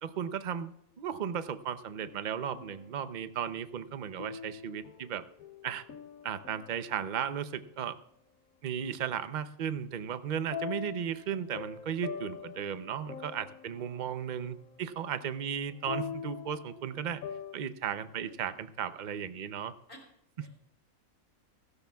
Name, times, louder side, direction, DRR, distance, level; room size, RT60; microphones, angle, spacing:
voice 1, 0.0-5.2 5.6-5.8 6.2-8.0 8.6-17.2 17.5-19.7, right 8 dB, 45° right, 11 dB, 0.6 m, -35 dB
sound 1, 1.9-3.1 4.2-7.4 10.5-17.5, left 7 dB, 75° left, 1.2 m, -44 dB
voice 2, 18.1-18.6 19.9-20.0 20.4-20.5, equal, 35° left, 1 dB, 4.5 m, -55 dB
17.0 x 15.5 x 2.3 m, 0.79 s
omnidirectional pair, 1.5 m